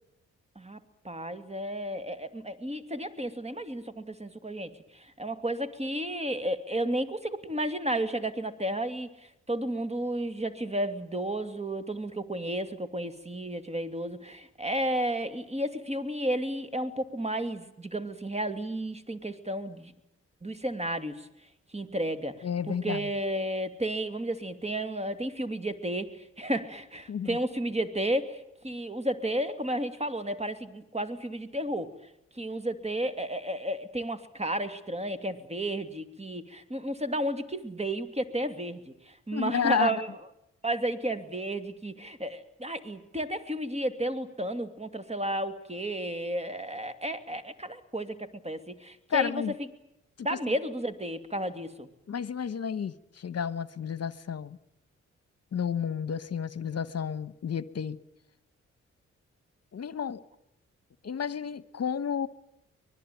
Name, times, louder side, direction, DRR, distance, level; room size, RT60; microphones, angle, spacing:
voice 1, 1.0-9.1 9.5-19.9 20.4-21.2 21.7-31.9 32.3-40.1 40.6-49.4 50.2-51.9, right 1 dB, 20° right, 2.6 m, -32 dB
voice 2, 22.4-23.1 27.1-27.4 39.3-40.0 49.1-49.5 50.3-50.5 52.1-54.6 55.5-58.0 59.7-60.2 61.0-62.3, left 7 dB, 50° left, 1.2 m, -31 dB
24.0 x 20.0 x 9.3 m
supercardioid pair, 40°, 31 cm